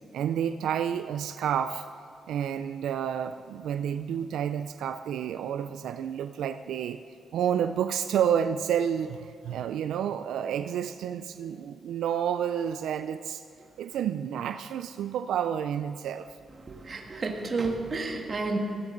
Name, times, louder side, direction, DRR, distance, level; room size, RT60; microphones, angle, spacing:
voice 1, 0.1-1.8 2.3-7.0 7.3-13.4 13.8-16.3, right 9 dB, 85° right, 10 dB, 0.4 m, -30 dB
voice 2, 16.6-18.6, right 3 dB, 35° right, 2 dB, 1.7 m, -31 dB
19.5 x 15.5 x 3.9 m, 2.3 s
cardioid pair, 130°, 0 cm